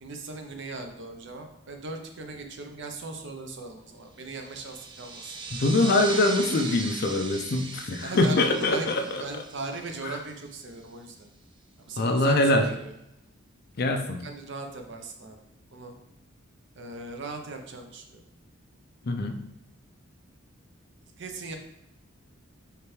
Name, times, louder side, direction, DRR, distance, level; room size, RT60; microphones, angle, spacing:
voice 1, 0.0-5.4 8.0-11.2 11.8-13.0 14.2-15.4 15.7-15.9 16.8-18.2 21.2-21.6, right 3 dB, 60° right, 5 dB, 0.6 m, -39 dB
sound 1, 4.3-10.5, right 4 dB, 20° right, 0.4 m, -39 dB
voice 2, 5.5-9.2 10.1-10.2 12.0-12.7 13.8-14.2 19.1-19.4, left 2 dB, 50° left, 5 dB, 0.5 m, -23 dB
4.6 x 3.3 x 3.1 m, 0.84 s
head